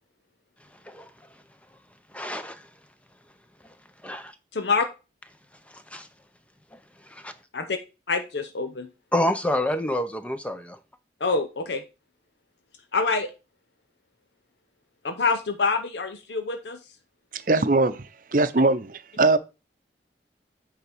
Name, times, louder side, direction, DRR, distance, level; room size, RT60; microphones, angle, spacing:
voice 1, 2.1-2.7 4.0-4.3 5.7-6.1 6.7-7.3 9.1-10.8, left 1 dB, 5° left, 0.7 m, -28 dB
voice 2, 4.5-4.9 7.5-7.8 8.1-8.9 11.2-11.8 12.9-13.3 15.0-16.8, left 4 dB, 75° left, 0.8 m, -26 dB
voice 3, 17.3-19.4, right 3 dB, 50° right, 0.7 m, -21 dB
8.7 x 3.6 x 6.1 m
head